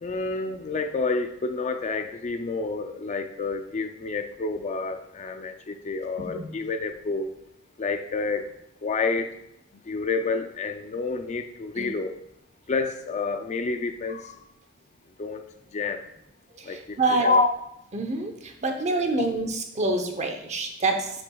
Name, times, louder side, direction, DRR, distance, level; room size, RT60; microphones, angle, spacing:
voice 1, 0.0-7.3 7.8-8.5 8.8-9.4 9.8-12.2 12.7-14.4 15.2-15.4 15.7-16.0 16.6-17.5 19.2-19.3, left 4 dB, 35° left, 7 dB, 0.4 m, -28 dB
voice 2, 16.6-17.3 17.9-21.1, right 2 dB, 35° right, 5 dB, 0.8 m, -27 dB
7.8 x 7.0 x 2.3 m, 0.78 s
head